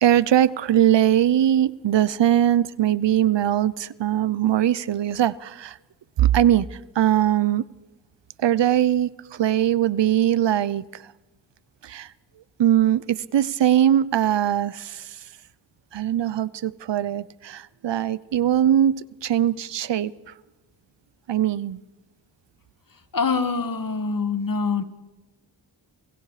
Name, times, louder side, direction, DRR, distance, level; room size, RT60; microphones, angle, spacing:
voice 1, 0.0-5.8 6.2-7.6 8.4-10.8 11.8-12.1 12.6-15.2 15.9-20.1 21.3-21.8, right 11 dB, 85° right, 20 dB, 0.8 m, -21 dB
voice 2, 23.1-24.8, left 4 dB, 50° left, 11 dB, 2.0 m, -24 dB
30.0 x 27.5 x 5.0 m, 1.1 s
cardioid pair, 70°, 42 cm